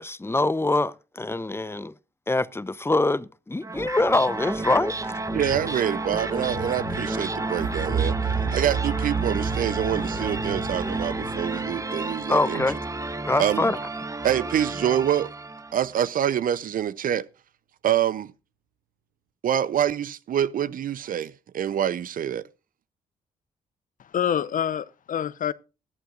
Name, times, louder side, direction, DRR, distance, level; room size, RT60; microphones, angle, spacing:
voice 1, 0.0-1.9 2.3-5.1 12.3-12.8 13.2-13.8, left 2 dB, 15° left, 0.7 m, -24 dB
sound 1, 3.6-15.8, right 2 dB, 20° right, 0.9 m, -31 dB
sound 2, 5.3-12.0, left 2 dB, 85° left, 7.9 m, -40 dB
voice 2, 5.3-8.2 8.5-12.6 13.4-13.7 14.2-15.3 15.7-17.3 17.8-18.3 19.4-22.4, right 10 dB, 60° right, 0.7 m, -26 dB
sound 3, 7.6-12.4, right 7 dB, 80° right, 1.2 m, -30 dB
voice 3, 24.0-25.5, left 9 dB, 55° left, 0.7 m, -27 dB
19.5 x 11.5 x 2.5 m
hypercardioid pair, 50°, 16 cm